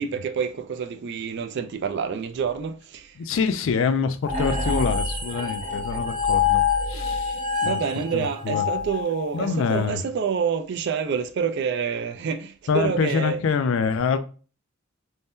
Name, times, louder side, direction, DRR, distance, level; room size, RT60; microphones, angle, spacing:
voice 1, 0.0-3.1 7.6-13.4, right 6 dB, 55° right, 0.3 m, -27 dB
voice 2, 3.2-7.8 8.1-8.7 9.3-10.0 12.7-14.2, left 5 dB, 65° left, 0.3 m, -25 dB
sound 1, 4.2-9.7, left 5 dB, 40° right, 0.7 m, -26 dB
2.6 x 2.1 x 3.4 m
head